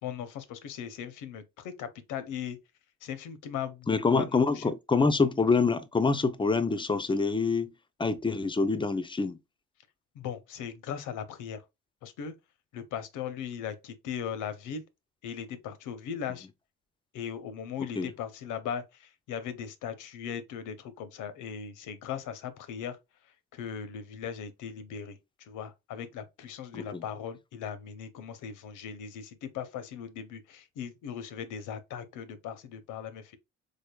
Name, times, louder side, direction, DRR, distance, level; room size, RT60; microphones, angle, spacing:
voice 1, 0.0-2.6 3.0-4.7 10.1-11.6 12.0-12.3 12.7-14.8 15.2-16.5 17.1-23.0 23.5-33.4, left 8 dB, 85° left, 0.7 m, -38 dB
voice 2, 3.9-7.7 8.0-9.4 18.0-18.1 26.7-27.0, left 4 dB, 15° left, 0.4 m, -26 dB
3.8 x 3.4 x 2.2 m
cardioid pair, 90°, 30 cm